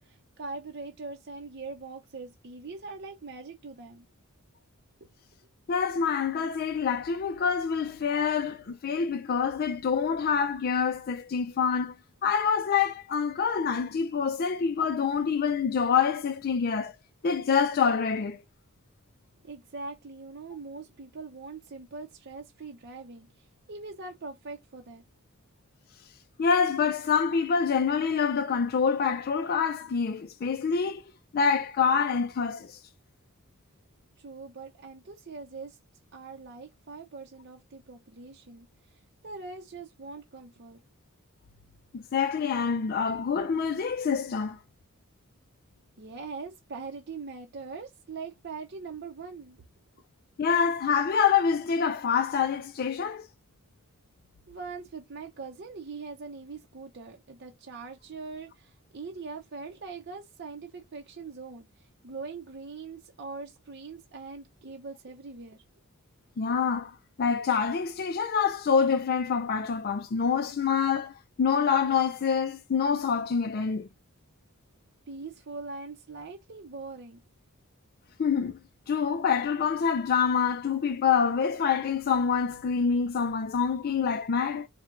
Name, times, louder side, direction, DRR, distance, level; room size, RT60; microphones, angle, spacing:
voice 1, 0.0-4.1 19.4-25.0 34.2-35.8 36.1-38.7 39.2-40.8 46.0-49.6 54.5-65.6 75.1-77.2, right 4 dB, 50° right, 0.6 m, -42 dB
voice 2, 5.7-11.9 12.2-17.0 17.2-18.4 26.4-31.0 31.3-32.8 41.9-44.6 50.4-53.3 66.4-66.9 67.2-71.1 71.4-73.9 78.2-78.6 78.9-84.7, left 6 dB, 45° left, 0.4 m, -26 dB
4.5 x 2.1 x 3.6 m
head